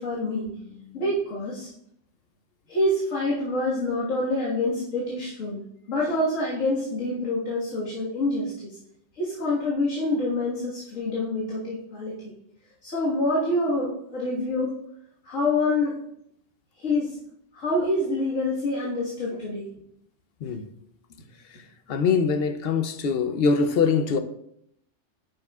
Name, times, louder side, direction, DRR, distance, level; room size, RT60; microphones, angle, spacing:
voice 1, 0.0-1.7 2.7-5.6 5.9-8.8 9.1-12.3 12.8-14.7 15.2-16.0 16.8-17.2 17.5-19.7 21.9-22.0, left 2 dB, 90° left, 2.0 m, -26 dB
voice 2, 21.9-24.2, left 5 dB, 60° left, 0.8 m, -23 dB
10.5 x 6.5 x 2.3 m
omnidirectional pair, 1.3 m